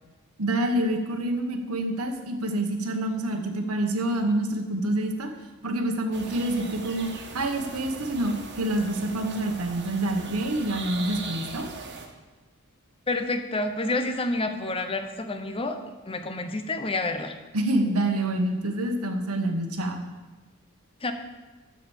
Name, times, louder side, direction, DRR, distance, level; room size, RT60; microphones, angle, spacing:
voice 1, 0.4-5.3 5.6-11.7 17.5-20.0, right 1 dB, 85° right, 4 dB, 1.4 m, -27 dB
sound 1, 6.1-12.1, right 4 dB, 55° right, 1.5 m, -40 dB
voice 2, 13.1-15.8 16.1-17.3 21.0-21.1, left 2 dB, 25° left, 7 dB, 0.9 m, -28 dB
12.5 x 5.1 x 7.3 m, 1.2 s
head